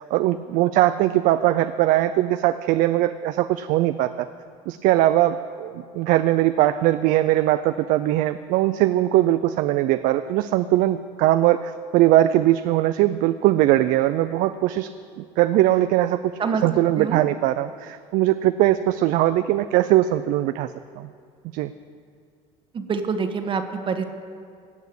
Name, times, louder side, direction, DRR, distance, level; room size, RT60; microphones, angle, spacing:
voice 1, 0.0-4.3 4.7-14.9 15.2-16.3 16.6-20.7 21.0-21.1 21.5-21.7, right 14 dB, 70° right, 11 dB, 0.5 m, -20 dB
voice 2, 22.7-24.0, right 5 dB, 35° right, 7 dB, 1.4 m, -26 dB
17.5 x 6.3 x 8.5 m, 2.3 s
supercardioid pair, 100°, 15 cm